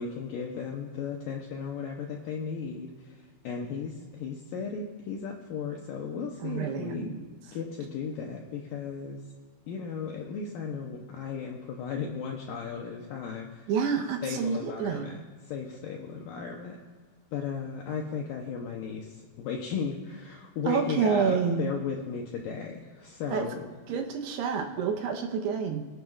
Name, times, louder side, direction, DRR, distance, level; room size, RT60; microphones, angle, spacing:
voice 1, 0.0-3.2 3.4-7.2 7.5-9.2 9.7-13.7 14.2-15.2 15.5-16.8 17.3-23.7, left 6 dB, 80° left, 0 dB, 2.0 m, -35 dB
voice 2, 6.4-7.2 13.7-15.3 20.7-21.7 23.3-23.5 23.9-25.9, right 6 dB, 75° right, 3 dB, 2.9 m, -28 dB
23.0 x 9.1 x 2.4 m, 1.6 s
omnidirectional pair, 5.0 m